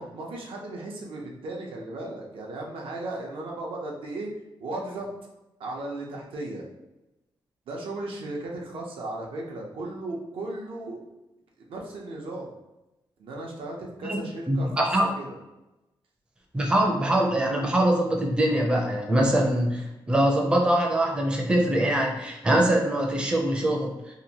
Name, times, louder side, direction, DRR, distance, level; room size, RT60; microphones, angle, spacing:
voice 1, 0.0-4.3 4.6-5.1 5.6-6.6 7.7-11.1 11.7-12.5 13.2-15.4, right 2 dB, 90° right, -2 dB, 0.6 m, -36 dB
voice 2, 14.5-15.0 16.5-23.9, right 1 dB, 10° right, 0 dB, 0.4 m, -23 dB
2.8 x 2.1 x 2.8 m, 0.98 s
wide cardioid pair, 150°, 9 cm